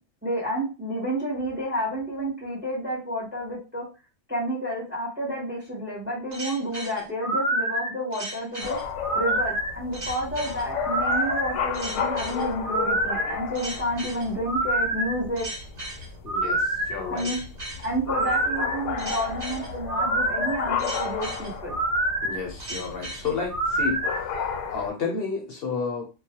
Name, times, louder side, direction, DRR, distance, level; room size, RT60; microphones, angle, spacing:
voice 1, 0.2-3.8 4.3-8.8 9.1-15.5 17.1-17.4 17.8-21.7, equal, 10° right, -4 dB, 0.6 m, -30 dB
sound 1, 6.3-24.2, right 1 dB, 70° right, 1.1 m, -28 dB
sound 2, 8.6-24.9, left 6 dB, 90° left, 0.9 m, -33 dB
voice 2, 16.2-17.3 22.2-26.0, left 5 dB, 60° left, 0 dB, 0.7 m, -31 dB
2.3 x 2.1 x 2.7 m, 0.32 s
omnidirectional pair, 1.2 m